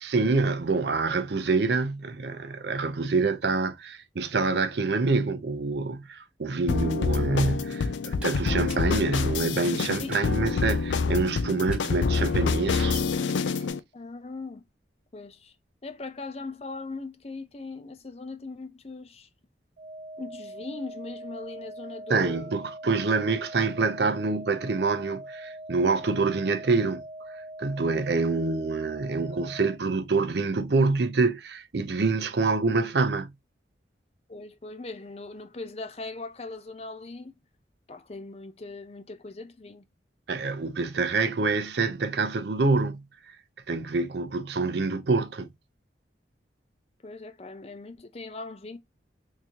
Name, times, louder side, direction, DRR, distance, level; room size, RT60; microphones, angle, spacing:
voice 1, 0.0-13.0 22.1-27.0 27.6-33.3 40.3-43.0 43.7-45.5, right 3 dB, 65° right, 0.6 m, -26 dB
sound 1, 6.7-13.8, left 5 dB, 85° left, 0.4 m, -27 dB
Walk footsteps, 8.1-13.7, right 1 dB, 5° right, 1.3 m, -49 dB
voice 2, 13.9-14.6 15.1-15.5 15.8-19.3 20.2-22.5 34.3-37.3 37.9-39.8 47.0-48.8, left 3 dB, 35° left, 0.5 m, -39 dB
sound 2, 19.8-29.8, right 1 dB, 45° right, 0.9 m, -42 dB
3.7 x 2.8 x 2.8 m
head